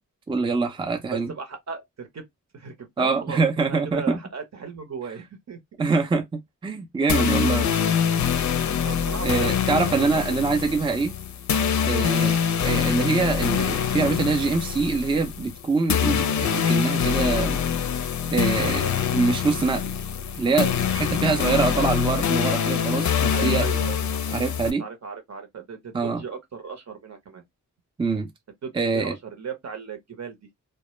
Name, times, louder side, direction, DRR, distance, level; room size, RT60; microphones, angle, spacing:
voice 1, 0.3-1.3 3.0-4.2 5.8-6.2 6.6-7.9 9.2-11.1 11.9-12.3 12.6-17.6 18.3-19.8 20.4-23.7 24.3-24.8 25.9-26.2 28.0-28.3 28.7-29.2, right 4 dB, 15° right, 0.4 m, -24 dB
voice 2, 1.1-2.2 2.5-5.6 7.7-7.8 8.8-10.0 10.5-10.7 11.9-12.1 23.3-24.2 24.6-27.4 28.6-30.4, right 6 dB, 55° right, 0.9 m, -36 dB
sound 1, 7.1-24.7, left 8 dB, 60° left, 0.4 m, -24 dB
2.2 x 2.1 x 3.0 m
cardioid pair, 70°, 33 cm